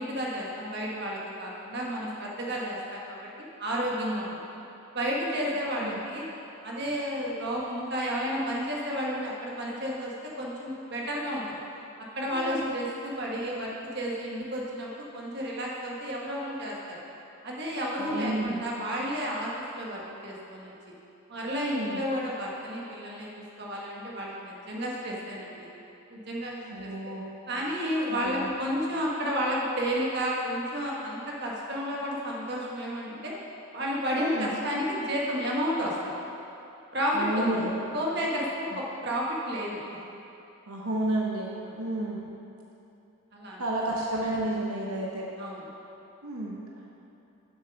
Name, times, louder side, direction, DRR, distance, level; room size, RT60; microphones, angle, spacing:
voice 1, 0.0-4.4 4.9-6.3 6.6-11.4 12.0-17.0 17.4-20.7 21.3-23.3 23.6-25.7 26.1-26.9 27.5-33.3 33.7-36.1 36.9-37.6 37.9-39.8 41.6-41.8 43.3-43.7 45.4-45.7, equal, 50° right, -3 dB, 1.4 m, -31 dB
voice 2, 12.3-12.7 18.0-18.6 21.5-22.0 26.7-27.3 28.1-28.5 34.1-34.5 37.1-37.8 38.7-38.8 40.7-42.3 43.6-45.3 46.2-46.6, right 1 dB, 85° right, -2 dB, 1.0 m, -31 dB
6.8 x 6.7 x 6.1 m, 2.8 s
head